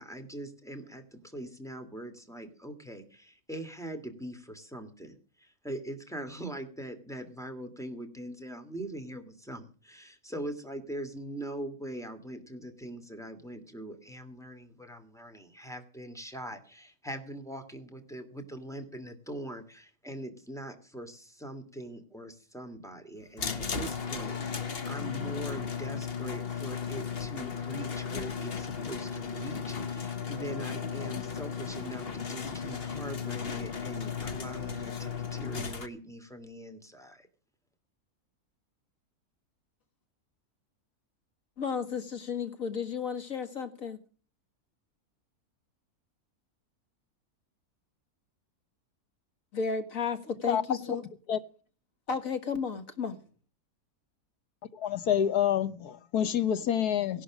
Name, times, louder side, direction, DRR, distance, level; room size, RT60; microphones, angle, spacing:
voice 1, 0.0-37.3, right 1 dB, ahead, 2.5 m, -42 dB
sound 1, 23.4-35.9, left 6 dB, 40° left, 1.4 m, -35 dB
voice 2, 41.6-44.0 49.5-51.0 52.1-53.2, left 6 dB, 60° left, 2.2 m, -33 dB
voice 3, 54.7-57.2, left 9 dB, 85° left, 1.7 m, -27 dB
17.0 x 11.5 x 6.3 m
omnidirectional pair, 1.6 m